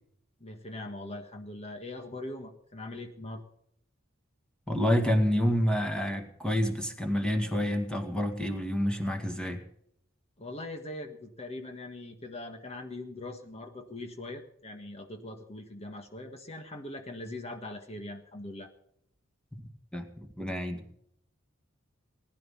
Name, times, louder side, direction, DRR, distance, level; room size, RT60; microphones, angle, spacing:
voice 1, 0.4-3.4 10.4-18.7, left 2 dB, 30° left, 5 dB, 1.6 m, -41 dB
voice 2, 4.7-9.6 19.5-19.6 19.9-20.9, equal, 5° left, 4 dB, 2.0 m, -28 dB
20.0 x 11.0 x 5.7 m, 0.72 s
head